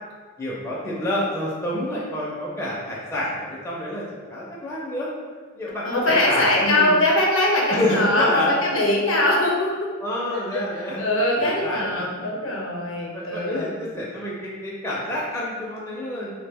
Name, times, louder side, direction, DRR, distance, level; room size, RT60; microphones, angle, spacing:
voice 1, 0.4-4.0 4.3-5.1 5.5-7.0 7.7-8.5 10.0-11.0 11.4-12.0 13.1-16.3, left 1 dB, 15° left, -6 dB, 0.4 m, -28 dB
voice 2, 5.8-9.9 10.5-13.7, left 1 dB, 65° left, -2 dB, 0.6 m, -22 dB
2.8 x 2.1 x 3.4 m, 1.5 s
head